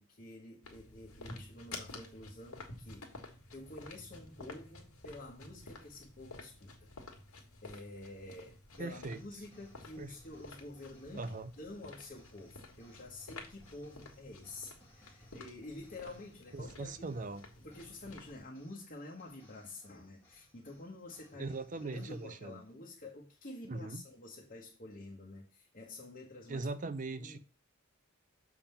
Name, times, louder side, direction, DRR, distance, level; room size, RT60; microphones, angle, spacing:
voice 1, 0.0-3.2 3.5-6.9 7.6-16.9 17.6-21.5 21.8-26.7 27.1-27.4, left 2 dB, 40° left, 1.2 m, -49 dB
sound 1, 0.6-18.4, left 3 dB, 85° left, 1.8 m, -52 dB
sound 2, 8.7-22.8, left 1 dB, 10° left, 1.6 m, -67 dB
voice 2, 8.8-9.2 10.0-10.1 11.1-11.5 16.5-17.5 21.4-22.6 23.7-24.0 26.5-27.4, right 3 dB, 35° right, 0.5 m, -40 dB
6.9 x 3.6 x 5.6 m
head